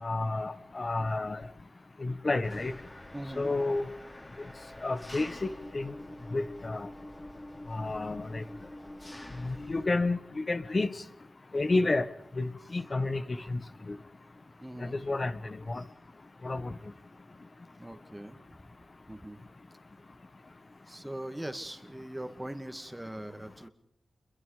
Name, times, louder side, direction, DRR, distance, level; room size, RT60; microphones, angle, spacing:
voice 1, 0.0-1.4 2.0-2.7 3.4-3.9 4.8-5.9 6.3-6.9 7.7-8.4 9.4-10.9 11.5-12.1 12.4-13.6 13.9-14.0 14.9-15.8 16.4-16.7, left 2 dB, 40° left, 12 dB, 1.6 m, -30 dB
Engine, 2.4-9.8, left 1 dB, 25° left, 3.8 m, -46 dB
voice 2, 3.1-3.5 14.6-15.0 15.8-15.9 17.8-18.4 19.1-19.4 20.9-23.7, right 1 dB, 10° right, 8 dB, 2.2 m, -41 dB
29.0 x 22.5 x 5.1 m, 0.69 s
cardioid pair, 60°, 0 cm